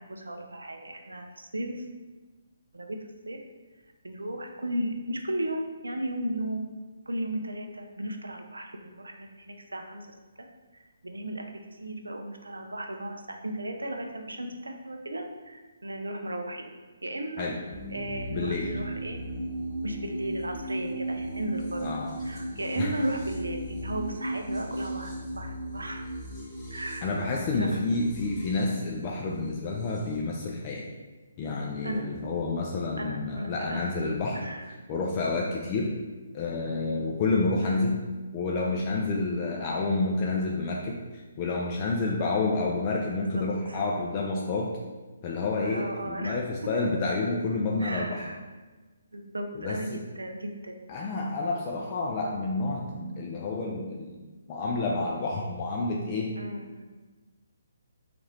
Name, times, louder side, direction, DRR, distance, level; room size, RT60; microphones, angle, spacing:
voice 1, 0.0-1.8 2.7-3.4 4.0-6.7 7.1-10.1 10.4-10.5 10.7-16.7 17.0-17.5 17.9-19.2 19.8-21.9 22.2-26.0 26.7-27.1 27.6-27.7 31.8-32.1 33.0-34.0 34.3-34.7 37.6-37.9 43.3-43.8 45.6-46.4 47.8-48.4 49.1-50.8 56.4-56.9, right 1 dB, 80° right, 4 dB, 0.4 m, -35 dB
sound 1, 17.7-30.2, right 1 dB, 5° left, 0.9 m, -36 dB
voice 2, 18.3-18.7 21.8-22.1 22.8-22.9 27.0-30.9 31.4-34.4 34.9-35.9 36.3-38.0 38.3-41.0 41.4-44.7 45.2-48.2 49.5-50.0 50.9-54.1 54.5-56.3, left 3 dB, 30° left, -2 dB, 0.3 m, -29 dB
2.7 x 2.5 x 3.2 m, 1.3 s
figure-of-eight pair, 140°, 0 cm